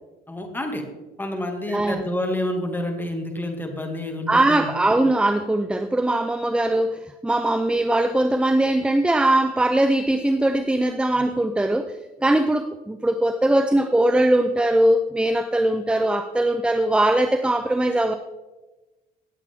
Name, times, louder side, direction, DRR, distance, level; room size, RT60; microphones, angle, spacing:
voice 1, 0.3-0.8 1.2-4.7, left 1 dB, 10° left, 3 dB, 2.3 m, -28 dB
voice 2, 1.7-2.0 4.3-18.1, right 1 dB, 5° right, 9 dB, 0.6 m, -21 dB
18.0 x 8.1 x 3.7 m, 1.1 s
cardioid pair, 110°, 17 cm